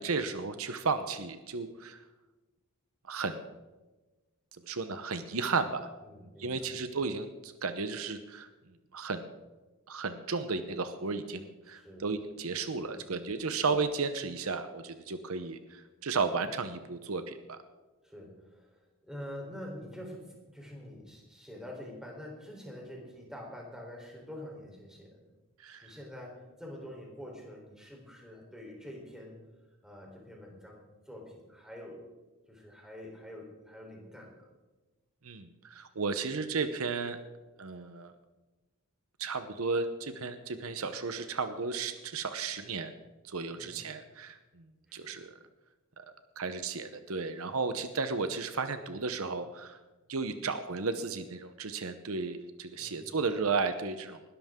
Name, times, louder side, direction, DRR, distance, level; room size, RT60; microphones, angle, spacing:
voice 1, 0.0-2.0 3.1-3.4 4.7-5.9 6.2-8.5 8.9-9.3 9.9-17.6 25.6-25.9 35.2-37.2 37.6-38.1 39.2-42.9 43.2-44.7 44.9-45.3 46.0-46.1 46.4-49.8 50.1-54.2, right 4 dB, 70° right, 10 dB, 0.9 m, -34 dB
voice 2, 6.0-6.7 11.6-12.1 12.8-12.9 18.0-25.3 25.8-29.4 29.8-32.1 32.5-34.5 43.5-43.9 44.9-45.1 52.7-53.2, equal, 5° right, -1 dB, 3.8 m, -46 dB
20.0 x 13.0 x 3.7 m, 1.2 s
head